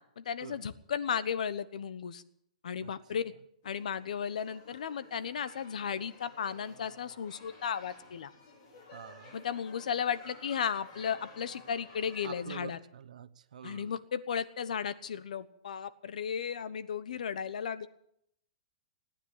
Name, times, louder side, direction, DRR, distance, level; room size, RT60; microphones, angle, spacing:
voice 1, 0.2-2.2 2.6-3.3 3.6-8.3 9.3-12.8 13.6-17.9, left 7 dB, 80° left, 14 dB, 1.1 m, -35 dB
sound 1, 3.6-12.4, left 2 dB, 35° left, 4.4 m, -54 dB
voice 2, 8.9-9.4 12.2-13.9, right 8 dB, 80° right, 12 dB, 1.0 m, -47 dB
17.5 x 10.0 x 8.3 m, 0.74 s
hypercardioid pair, 175°, 4 cm